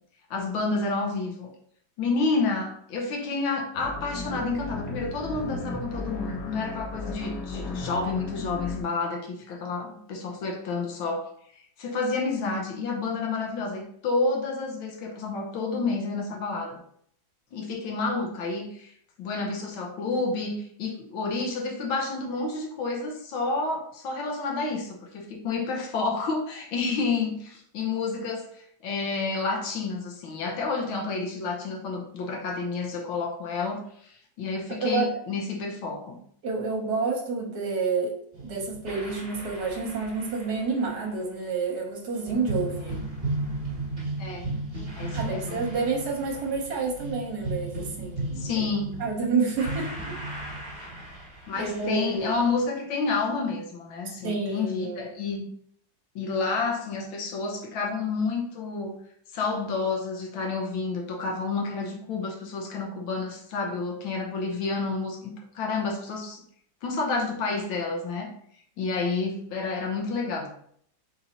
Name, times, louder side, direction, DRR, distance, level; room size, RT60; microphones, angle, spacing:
voice 1, 0.3-1.5 2.0-11.3 11.8-16.8 17.5-18.9 19.2-36.2 44.2-44.5 45.0-45.6 48.4-49.0 51.5-55.5 56.1-59.0 59.3-66.4 66.8-68.3 68.8-70.5, left 4 dB, 80° left, 1 dB, 1.7 m, -30 dB
sound 1, 3.8-8.8, left 2 dB, 55° left, 1.3 m, -36 dB
voice 2, 34.7-35.1 36.4-43.0 45.1-48.7 49.0-50.2 51.5-52.4 54.2-55.0, right 4 dB, 55° right, 1 dB, 1.4 m, -29 dB
sound 2, 38.3-41.1 42.3-52.6, right 2 dB, 30° right, 1.0 m, -35 dB
4.3 x 3.9 x 2.9 m, 0.64 s
omnidirectional pair, 2.2 m